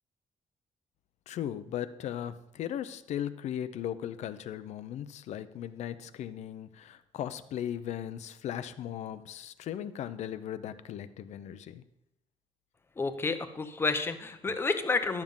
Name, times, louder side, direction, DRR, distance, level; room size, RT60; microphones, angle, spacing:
voice 1, 1.3-11.8, left 10 dB, 70° left, 13 dB, 0.7 m, -37 dB
voice 2, 13.0-15.2, left 4 dB, 20° left, 9 dB, 0.7 m, -30 dB
12.0 x 7.3 x 5.4 m, 0.82 s
cardioid pair, 175°, 12 cm